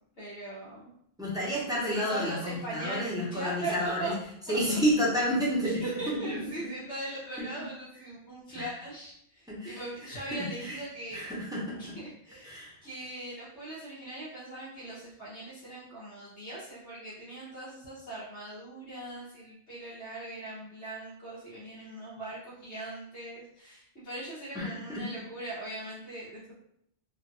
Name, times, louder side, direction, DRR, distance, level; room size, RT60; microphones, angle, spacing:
voice 1, 0.2-0.9 1.9-4.2 4.5-4.8 5.6-11.3 11.8-26.5, right 2 dB, 75° left, -12 dB, 1.4 m, -40 dB
voice 2, 1.2-4.1 4.5-6.2 8.5-8.7 9.5-9.8 10.3-10.4 10.6-10.8 11.1-11.8 12.4-12.7 24.5-25.0, equal, 5° right, -7 dB, 0.7 m, -30 dB
3.1 x 2.3 x 2.6 m, 0.73 s
omnidirectional pair, 1.1 m